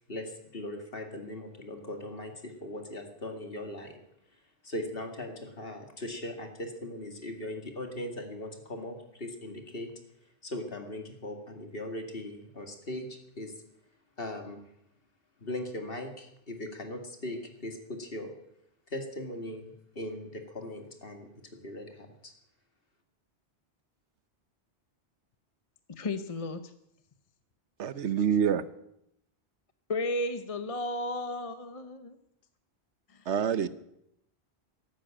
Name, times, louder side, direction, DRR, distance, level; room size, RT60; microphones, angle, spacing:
voice 1, 0.1-3.9 4.6-9.9 10.4-13.1 13.4-13.5 14.2-14.6 15.4-18.3 18.9-21.3 21.6-22.3, left 1 dB, 55° left, 4 dB, 2.4 m, -39 dB
voice 2, 25.9-26.6 29.9-32.2 33.1-33.2, left 2 dB, 35° left, 10 dB, 0.8 m, -33 dB
voice 3, 27.8-28.6 33.3-33.7, right 8 dB, 90° right, 14 dB, 1.2 m, -26 dB
14.0 x 11.5 x 8.9 m, 0.79 s
omnidirectional pair, 1.1 m